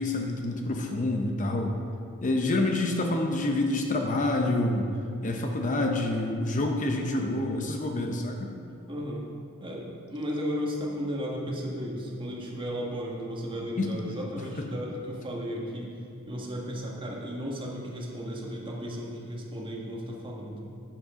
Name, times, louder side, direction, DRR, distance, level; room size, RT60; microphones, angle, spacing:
voice 1, 0.0-1.7 2.2-4.9 5.2-8.5 13.8-13.9 14.4-14.7, left 2 dB, 35° left, 2 dB, 0.7 m, -27 dB
voice 2, 8.8-9.2 9.6-15.9 16.2-20.6, equal, 25° right, -3 dB, 1.5 m, -34 dB
10.5 x 8.9 x 3.7 m, 2.4 s
head